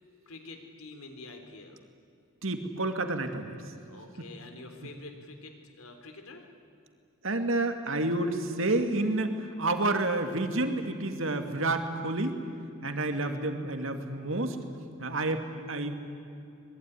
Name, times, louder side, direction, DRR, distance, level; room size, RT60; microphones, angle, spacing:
voice 1, 0.3-1.8 3.9-6.5 13.2-13.4, left 2 dB, 80° left, 5 dB, 3.5 m, -47 dB
voice 2, 2.4-3.6 4.2-4.3 7.2-12.3 12.8-14.6 15.0-15.9, right 2 dB, 60° right, 6 dB, 2.3 m, -29 dB
25.5 x 21.5 x 10.0 m, 2.5 s
head